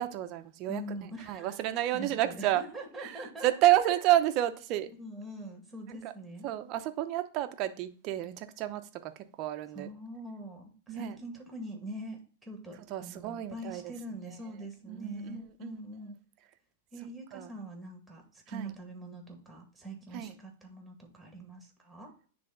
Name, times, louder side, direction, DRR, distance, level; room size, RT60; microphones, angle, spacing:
voice 1, 0.0-0.8 1.3-2.6 3.0-4.9 5.9-6.1 6.4-9.1 9.4-9.9 10.9-11.2 12.9-13.8 14.9-15.8 17.3-17.5 18.5-18.7 20.1-20.3, right 14 dB, 40° right, 0.8 m, -30 dB
voice 2, 0.7-3.5 3.8-4.3 5.0-6.5 9.7-16.2 16.9-22.1, right 1 dB, 5° right, 2.0 m, -43 dB
9.8 x 3.4 x 3.9 m
hypercardioid pair, 135°, 0 cm